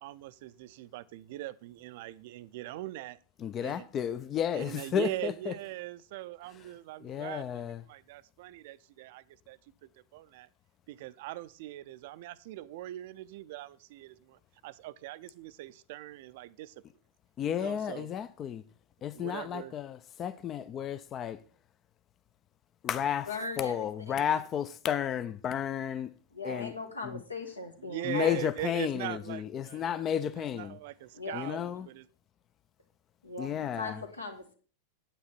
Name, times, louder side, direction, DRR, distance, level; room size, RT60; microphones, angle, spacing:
voice 1, 0.0-3.2 3.6-3.9 4.5-10.5 10.9-16.8 17.5-18.1 19.1-19.7 27.9-30.0 30.4-32.0, right 16 dB, 50° right, 0.4 m, -41 dB
voice 2, 3.4-5.5 7.0-7.8 17.4-18.6 19.0-21.4 22.8-23.3 23.6-26.1 26.4-26.7 27.0-27.2 28.0-30.8 31.3-31.9 33.4-34.0, left 9 dB, 30° left, 0.4 m, -32 dB
voice 3, 23.3-24.2 26.3-28.4 31.1-31.6 33.2-34.5, left 3 dB, 80° left, 1.5 m, -40 dB
9.1 x 8.9 x 4.3 m
figure-of-eight pair, 90°, 0 cm